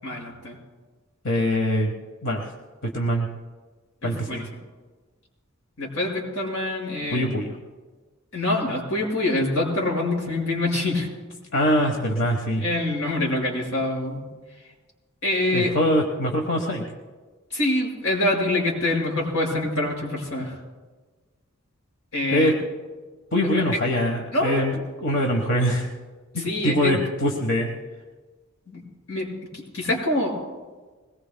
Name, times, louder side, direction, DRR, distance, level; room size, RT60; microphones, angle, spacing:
voice 1, 0.0-0.6 4.0-4.5 5.8-7.3 8.3-11.1 12.6-14.3 15.2-15.7 17.5-20.6 22.1-22.5 23.4-23.8 24.3-24.6 26.4-27.0 28.7-30.3, left 2 dB, 90° left, -2 dB, 5.7 m, -25 dB
voice 2, 1.2-1.9 2.2-2.5 2.9-3.3 4.0-4.5 7.1-7.5 11.5-12.6 15.5-16.8 22.3-22.5 23.3-25.9 26.3-27.7, equal, 65° left, 2 dB, 1.4 m, -23 dB
22.0 x 20.5 x 2.3 m, 1.3 s
head